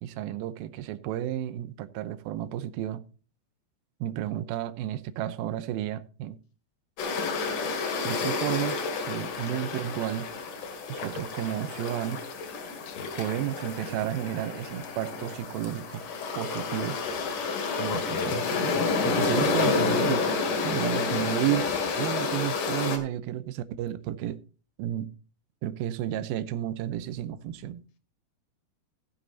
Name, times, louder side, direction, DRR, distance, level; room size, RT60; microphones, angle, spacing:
voice 1, 0.0-3.0 4.0-6.4 8.0-8.8 9.1-10.3 10.9-12.2 13.2-16.0 16.4-17.0 17.8-20.4 20.6-21.6 21.9-24.4 24.8-25.1 25.6-27.8, right 12 dB, 80° right, 2.3 m, -32 dB
Relaxing Beach Waves, 7.0-23.0, left 4 dB, 55° left, 3.0 m, -30 dB
voice 2, 17.0-17.4 17.9-18.7 20.9-21.3, left 7 dB, 80° left, 3.8 m, -37 dB
16.0 x 7.0 x 3.9 m
omnidirectional pair, 5.0 m